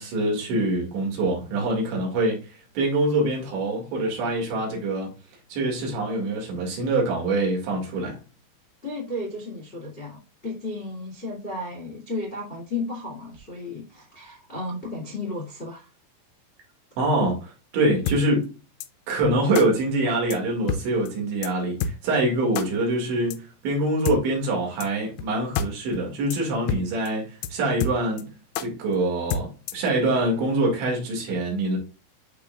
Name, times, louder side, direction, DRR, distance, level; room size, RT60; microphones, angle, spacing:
voice 1, 0.0-2.4 2.8-5.1 5.5-8.2 17.0-18.5 19.1-31.8, right 2 dB, 65° right, 4.3 m, -25 dB
voice 2, 8.8-15.9, left 2 dB, 30° left, 1.3 m, -34 dB
sound 1, 18.1-18.2 18.8-18.9 19.6-19.7 20.3-20.4 20.7-20.8 21.1-21.2 21.4-21.5 21.8-21.9 22.6-22.7 23.3-23.4 24.1-24.2 24.8-24.9 25.2-25.3 25.6-25.7 25.9-26.0 26.3-26.4 26.7-26.8 27.1-27.2 27.4-27.5 27.8-28.2 28.6-28.7 29.3-29.9, left 6 dB, 85° left, 3.3 m, -27 dB
11.5 x 3.9 x 2.4 m
omnidirectional pair, 5.7 m